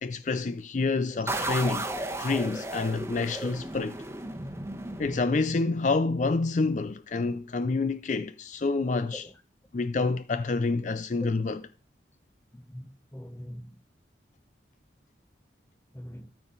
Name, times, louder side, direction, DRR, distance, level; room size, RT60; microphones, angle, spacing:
voice 1, 0.0-1.9 2.2-4.0 5.0-9.3 9.7-11.7, left 3 dB, 40° left, 0.4 m, -28 dB
sound 1, 1.3-5.8, right 2 dB, 15° right, 1.1 m, -35 dB
voice 2, 12.5-13.7 15.9-16.3, equal, 10° left, 0.8 m, -42 dB
13.5 x 6.0 x 3.9 m
head